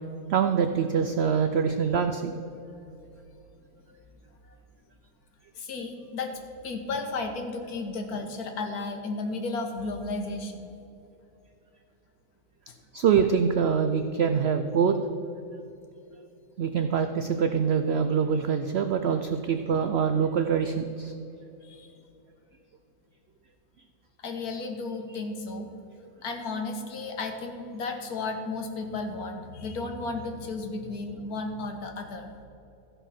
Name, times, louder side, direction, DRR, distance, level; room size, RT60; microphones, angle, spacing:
voice 1, 0.3-2.3 12.9-15.0 16.6-21.1, right 6 dB, 75° right, 7 dB, 0.5 m, -24 dB
voice 2, 5.6-6.3 6.6-10.7 21.6-21.9 24.2-25.7 26.2-32.3, left 3 dB, 75° left, 4 dB, 1.6 m, -34 dB
14.5 x 5.5 x 5.7 m, 2.8 s
omnidirectional pair, 1.6 m